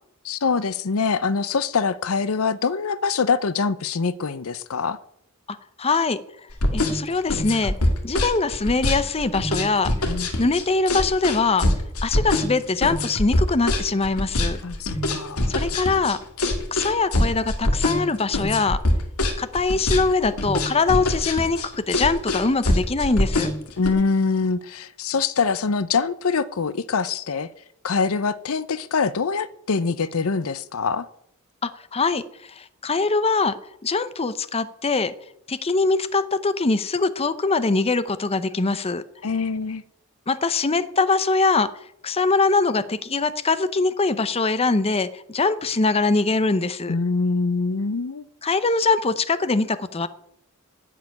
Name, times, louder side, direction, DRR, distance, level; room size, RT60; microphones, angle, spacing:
voice 1, 0.2-5.0 10.1-10.3 14.6-15.5 23.8-27.5 27.8-31.1 39.2-39.8 46.9-48.3, left 4 dB, 65° left, 0.6 m, -24 dB
voice 2, 5.5-6.2 6.7-7.7 8.0-9.9 10.4-11.7 12.0-14.6 15.5-16.2 16.7-18.8 19.4-23.5 31.6-33.6 33.8-35.1 35.5-39.0 40.3-41.7 42.0-46.9 48.4-50.1, left 3 dB, 25° left, 0.7 m, -22 dB
sound 1, 6.5-23.9, left 1 dB, 85° left, 2.1 m, -23 dB
11.0 x 7.6 x 9.4 m
head